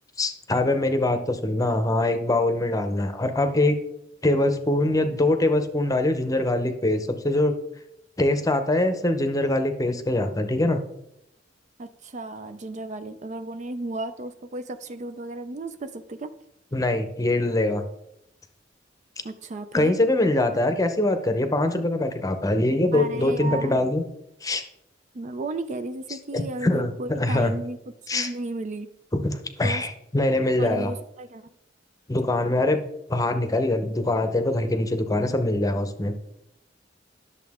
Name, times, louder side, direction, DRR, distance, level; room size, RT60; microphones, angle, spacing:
voice 1, 0.2-3.8 4.2-7.5 8.2-10.8 16.7-17.8 19.7-24.0 24.4-24.6 26.3-27.5 28.1-28.3 29.2-30.9 32.1-32.8 33.1-36.1, left 2 dB, 20° left, 8 dB, 0.8 m, -23 dB
voice 2, 11.8-16.3 19.2-20.0 22.9-23.8 25.1-27.8 28.1-28.9 29.6-29.8 30.6-31.5, right 2 dB, 40° right, 10 dB, 0.4 m, -34 dB
10.5 x 6.8 x 3.6 m, 0.82 s
head